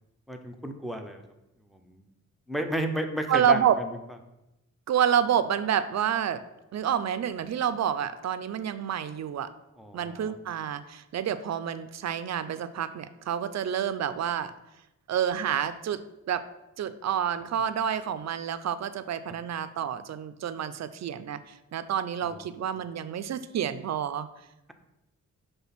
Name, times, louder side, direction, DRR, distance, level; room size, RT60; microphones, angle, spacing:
voice 1, 0.3-1.2 1.7-2.1 2.5-4.0 9.8-10.3 22.2-22.4, equal, ahead, 5 dB, 0.5 m, -33 dB
voice 2, 3.3-3.8 4.9-6.4 6.7-9.5 9.9-14.5 15.1-16.5 16.8-24.3, right 9 dB, 60° right, 12 dB, 0.4 m, -28 dB
6.1 x 3.3 x 5.6 m, 0.93 s
wide cardioid pair, 145°, 30 cm